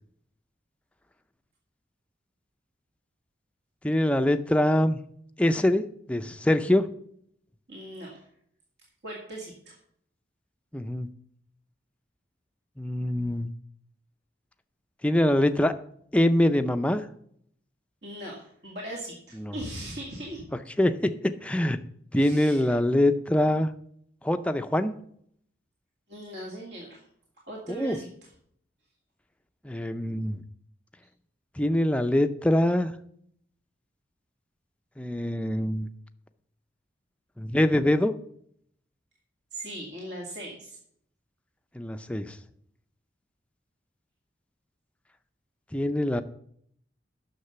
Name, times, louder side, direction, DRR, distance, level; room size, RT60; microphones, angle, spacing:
voice 1, 3.8-5.0 5.4-5.8 6.1-6.9 10.7-11.1 12.8-13.5 15.0-15.7 16.1-17.0 19.4-19.5 20.8-21.8 22.1-23.7 24.2-24.9 27.7-28.0 29.6-30.4 31.6-32.9 35.0-35.9 37.4-38.1 41.7-42.4 45.7-46.2, left 1 dB, 5° left, 8 dB, 0.5 m, -24 dB
voice 2, 7.7-8.2 9.0-9.8 18.0-20.4 22.1-22.7 26.1-27.0 27.5-28.1 39.5-40.8, right 1 dB, 65° right, -2 dB, 2.2 m, -39 dB
9.8 x 6.6 x 6.7 m, 0.67 s
head